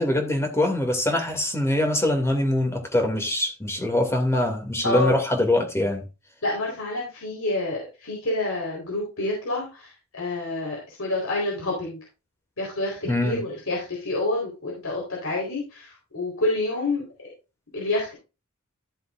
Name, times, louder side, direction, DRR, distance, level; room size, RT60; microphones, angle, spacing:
voice 1, 0.0-6.0 13.0-13.4, left 1 dB, 15° left, 2.5 m, -23 dB
voice 2, 4.8-5.1 6.4-12.0 12.6-17.3 17.7-18.1, left 2 dB, 70° left, 4.2 m, -28 dB
14.0 x 7.6 x 2.5 m
head